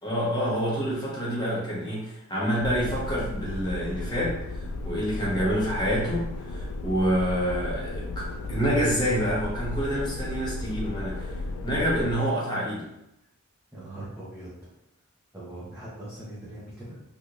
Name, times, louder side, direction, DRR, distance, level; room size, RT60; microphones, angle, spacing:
voice 1, 0.0-4.4 4.8-11.3 11.6-12.9, equal, 20° left, -6 dB, 1.0 m, -27 dB
sound 1, 2.6-12.1, left 2 dB, 80° left, 0.3 m, -34 dB
voice 2, 13.7-14.7 15.3-17.0, right 1 dB, 10° right, -11 dB, 0.8 m, -41 dB
3.4 x 2.8 x 2.4 m, 0.85 s
head